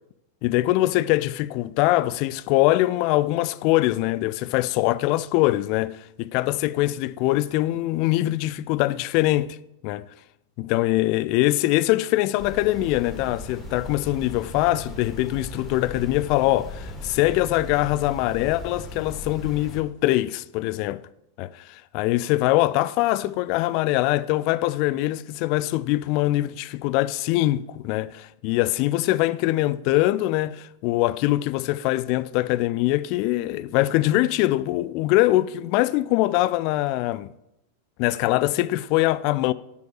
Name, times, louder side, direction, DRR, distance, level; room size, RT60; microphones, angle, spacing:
voice 1, 0.4-9.6 9.8-10.1 10.6-21.0 21.4-37.3 38.0-39.5, left 17 dB, 45° left, 0.3 m, -23 dB
sound 1, 12.4-19.8, left 1 dB, 15° left, 2.2 m, -38 dB
7.9 x 5.1 x 6.4 m
figure-of-eight pair, 90°, 0 cm